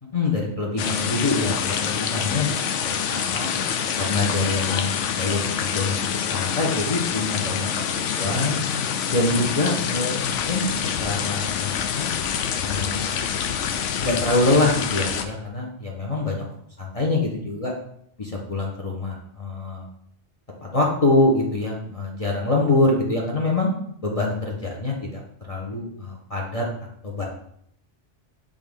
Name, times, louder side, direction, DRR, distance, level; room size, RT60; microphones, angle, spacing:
voice 1, 0.1-3.5 4.0-6.0 6.2-7.7 8.0-8.6 9.1-10.7 11.0-12.1 12.6-13.3 14.0-16.4 16.8-17.7 18.2-19.9 20.6-23.7 24.0-25.2 25.5-26.7 27.0-27.2, left 2 dB, 35° left, -1 dB, 0.9 m, -25 dB
sound 1, 0.8-15.2, left 8 dB, 85° left, 0.9 m, -26 dB
8.4 x 3.6 x 3.5 m, 0.70 s
omnidirectional pair, 1.2 m